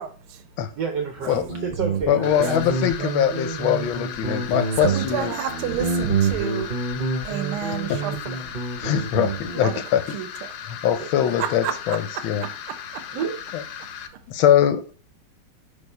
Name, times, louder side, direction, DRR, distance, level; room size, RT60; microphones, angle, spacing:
voice 1, 0.0-0.4 3.0-3.1 4.8-6.7 7.2-8.6 9.6-10.5 11.4-13.0, right 9 dB, 85° right, 1.5 m, -31 dB
voice 2, 0.7-2.6 9.5-9.9 11.0-11.1 13.1-13.4, right 6 dB, 70° right, 1.1 m, -30 dB
Guitar, 1.2-9.7, right 4 dB, 35° right, 0.8 m, -28 dB
voice 3, 2.1-5.3 7.9-8.0 8.8-10.0 10.7-12.4 13.5-13.6 14.3-14.9, left 10 dB, 70° left, 1.4 m, -22 dB
sound 1, 2.2-14.1, left 9 dB, 90° left, 1.6 m, -37 dB
5.5 x 3.5 x 5.3 m
omnidirectional pair, 2.4 m